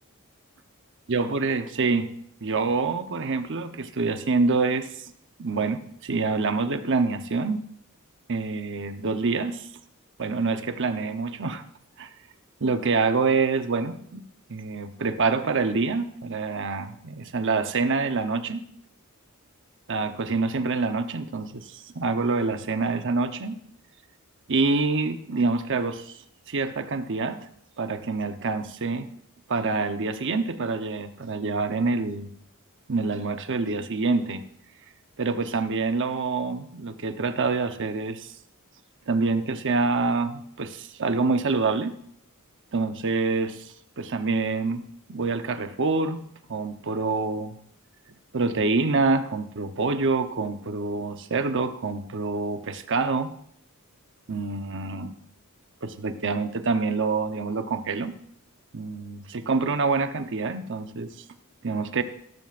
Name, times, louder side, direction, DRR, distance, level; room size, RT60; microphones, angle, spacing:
voice 1, 1.1-2.1 2.4-5.1 5.4-7.6 8.3-9.7 10.2-11.6 12.0-12.1 12.6-14.2 14.5-18.6 19.9-23.6 24.5-26.2 26.5-27.5 27.8-29.1 29.5-32.3 32.9-34.4 35.2-38.3 39.1-41.9 42.7-44.8 45.1-46.2 46.5-47.6 48.3-53.3 54.3-55.1 55.8-58.1 58.7-61.1 61.6-62.0, right 4 dB, 60° right, 8 dB, 0.9 m, -26 dB
17.5 x 13.5 x 2.5 m, 0.68 s
head